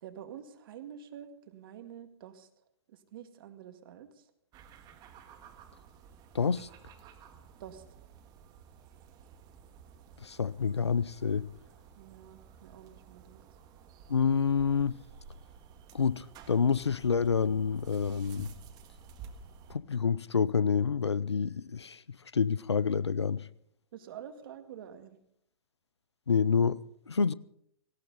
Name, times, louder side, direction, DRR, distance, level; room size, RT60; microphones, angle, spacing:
voice 1, 0.0-2.5 2.9-4.2 7.6-7.8 12.0-13.4 23.9-25.2, right 9 dB, 55° right, 2.0 m, -47 dB
sound 1, 4.5-19.8, right 6 dB, 30° right, 1.7 m, -53 dB
voice 2, 6.3-6.7 10.2-11.5 14.1-15.0 15.9-18.5 19.7-22.0 22.3-23.5 26.3-26.8 27.1-27.3, left 6 dB, 90° left, 0.6 m, -28 dB
18.5 x 17.0 x 4.0 m
hypercardioid pair, 115°, 14 cm